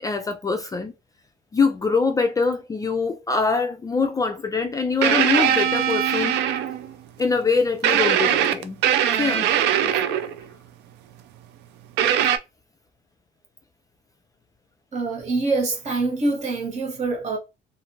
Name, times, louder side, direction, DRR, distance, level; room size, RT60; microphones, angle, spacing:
voice 1, 0.0-0.9 1.5-6.4 7.2-8.8 9.2-9.5 9.8-10.2, left 4 dB, 20° left, 0.3 m, -24 dB
sound 1, 5.0-6.9 7.8-10.4 12.0-12.4, right 10 dB, 85° right, 0.4 m, -21 dB
voice 2, 14.9-17.4, right 3 dB, 45° right, 1.4 m, -25 dB
2.5 x 2.4 x 2.9 m
cardioid pair, 110°, 17 cm